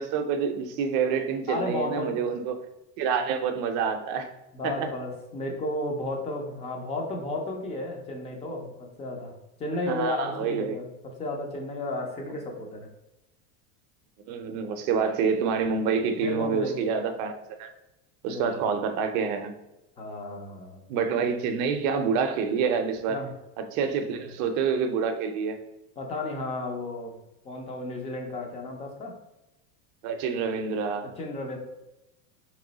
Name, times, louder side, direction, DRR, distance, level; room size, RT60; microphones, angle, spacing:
voice 1, 0.0-2.7 3.0-4.3 4.6-4.9 9.9-10.8 14.3-17.7 18.2-19.5 20.9-23.2 23.6-25.6 30.0-31.1, right 6 dB, 45° right, 7 dB, 0.5 m, -27 dB
voice 2, 1.5-2.2 4.5-12.9 16.2-16.9 18.3-18.6 20.0-20.9 23.1-23.3 26.0-27.2 27.4-29.2 31.0-31.6, left 2 dB, 15° left, 2 dB, 0.3 m, -33 dB
3.3 x 3.1 x 3.8 m, 0.94 s
supercardioid pair, 135°, 44 cm